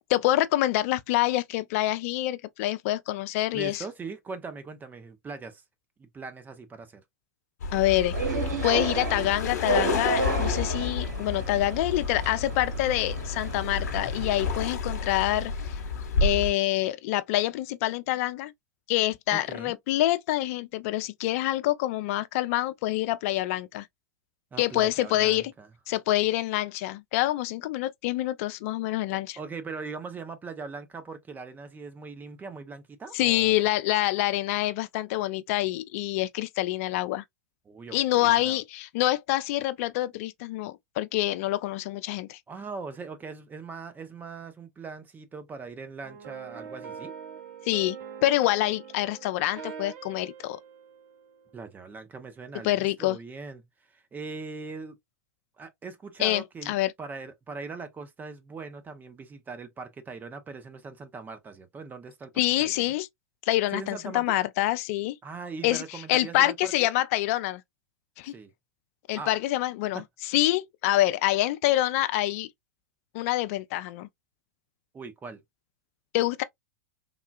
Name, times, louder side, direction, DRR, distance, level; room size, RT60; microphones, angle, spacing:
voice 1, 0.1-3.8 7.7-8.2 8.6-15.8 16.2-18.5 18.9-23.9 24.6-25.5 25.9-29.4 33.1-37.2 37.9-42.4 47.7-48.0 48.2-50.6 52.6-53.2 56.2-56.9 62.4-63.1 63.5-65.2 65.6-67.6 68.2-68.3 69.1-72.5 73.1-74.1 76.1-76.4, left 16 dB, 55° left, 0.4 m, -26 dB
voice 2, 3.5-5.6 6.0-7.0 19.3-19.8 24.5-25.7 29.4-33.6 37.7-38.6 42.5-47.1 51.5-53.7 53.9-55.0 55.6-62.3 62.6-62.9 63.7-64.4 65.2-66.9 68.3-68.5 69.1-69.3 74.9-75.4, right 4 dB, 20° right, 0.7 m, -40 dB
sound 1, 7.6-16.5, left 4 dB, 75° left, 1.0 m, -31 dB
sound 2, 8.1-14.7, right 4 dB, 80° right, 1.0 m, -33 dB
sound 3, 46.0-51.7, right 7 dB, 60° right, 1.2 m, -43 dB
3.6 x 2.3 x 2.3 m
hypercardioid pair, 100°, 9 cm